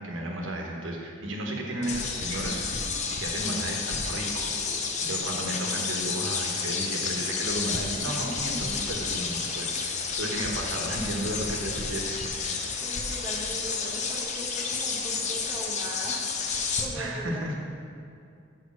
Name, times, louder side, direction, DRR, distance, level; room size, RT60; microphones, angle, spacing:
voice 1, 0.0-2.6 3.1-4.5 5.0-12.2 12.7-12.8 16.9-17.6, right 1 dB, 80° right, 0 dB, 1.2 m, -33 dB
sound 1, 1.8-7.0, left 2 dB, 80° left, 2.0 m, -48 dB
sound 2, 1.8-16.9, left 5 dB, 35° left, 0.6 m, -31 dB
voice 2, 12.8-16.2 16.8-17.6, right 1 dB, 15° right, -3 dB, 1.1 m, -40 dB
6.3 x 4.9 x 6.2 m, 2.5 s
head